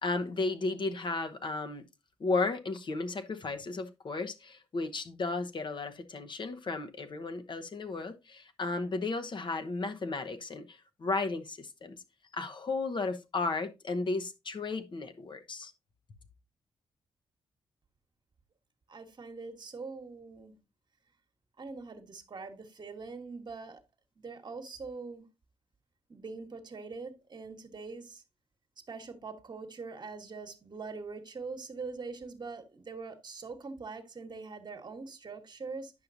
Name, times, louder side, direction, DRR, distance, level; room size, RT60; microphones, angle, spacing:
voice 1, 0.0-1.8 2.2-12.0 12.3-15.7, left 3 dB, 45° left, 0.9 m, -34 dB
voice 2, 18.9-20.6 21.6-23.8 24.2-25.3 26.1-28.2 28.9-35.9, right 4 dB, 45° right, 1.3 m, -43 dB
9.6 x 5.7 x 2.6 m
supercardioid pair, 45°, 11 cm